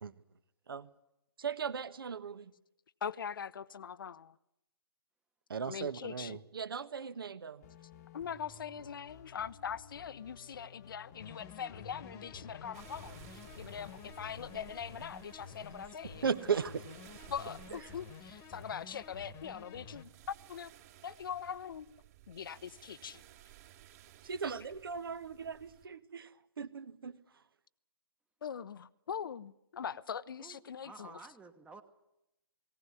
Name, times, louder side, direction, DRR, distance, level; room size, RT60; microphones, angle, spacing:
voice 1, 1.4-2.5 5.5-7.6 16.2-16.8 24.2-26.3 26.6-27.1, right 6 dB, 65° right, 1.3 m, -37 dB
voice 2, 3.0-4.4 5.7-6.4 8.1-16.3 17.3-20.7 21.0-22.0 22.3-23.2 28.4-31.2, left 7 dB, 60° left, 0.8 m, -42 dB
sound 1, 7.6-14.7, left 7 dB, 40° left, 1.2 m, -55 dB
sound 2, 11.2-20.0, left 6 dB, 20° left, 1.4 m, -51 dB
sound 3, 12.7-25.9, right 13 dB, 40° right, 3.1 m, -57 dB
voice 3, 30.4-31.8, right 4 dB, 10° right, 1.2 m, -52 dB
19.0 x 18.0 x 9.7 m
figure-of-eight pair, 130°, 13 cm